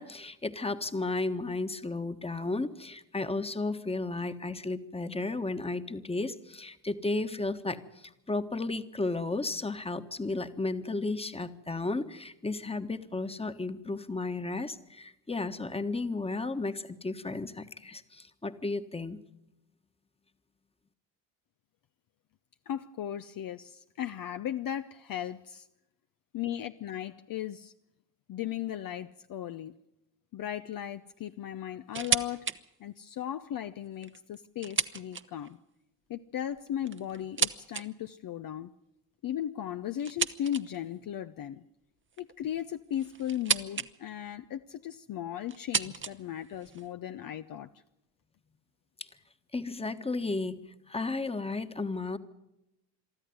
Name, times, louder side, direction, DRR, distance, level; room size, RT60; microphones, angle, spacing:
voice 1, 0.0-19.2 49.5-50.6 50.9-52.2, left 3 dB, 10° left, 10 dB, 1.4 m, -33 dB
voice 2, 22.7-25.7 26.3-27.7 28.3-29.7 30.3-32.5 32.8-35.6 36.1-38.7 39.2-41.6 42.2-47.7, left 11 dB, 45° left, 9 dB, 0.7 m, -36 dB
sound 1, 31.9-32.6 33.0-33.1 33.8-35.5 36.5-37.9 40.0-40.9 42.1-43.9 44.2-44.7 45.5-46.9, right 6 dB, 25° right, 1.0 m, -33 dB
23.5 x 13.0 x 9.5 m, 0.90 s
hypercardioid pair, 60°, 46 cm